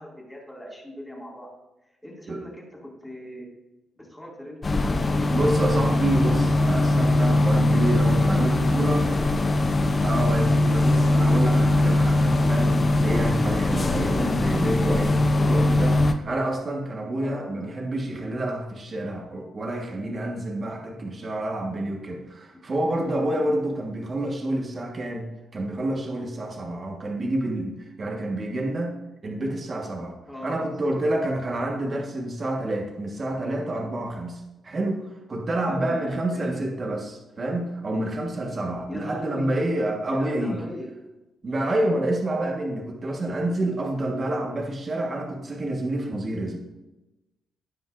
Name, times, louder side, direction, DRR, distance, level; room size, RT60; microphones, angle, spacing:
voice 1, 0.0-1.5 2.0-3.5 4.0-5.5 8.0-9.8 15.3-15.7 17.2-17.6 22.5-22.6 30.3-30.7 35.7-36.7 38.9-39.6 40.1-41.0, equal, 5° left, -4 dB, 2.3 m, -39 dB
sound 1, 4.6-16.1, left 2 dB, 25° left, 0.5 m, -21 dB
voice 2, 5.3-9.0 10.0-25.3 25.5-28.9 29.2-30.2 30.4-40.6 41.4-46.6, right 1 dB, 35° right, 0 dB, 1.3 m, -28 dB
16.0 x 5.3 x 2.5 m, 1.0 s
cardioid pair, 130°, 0 cm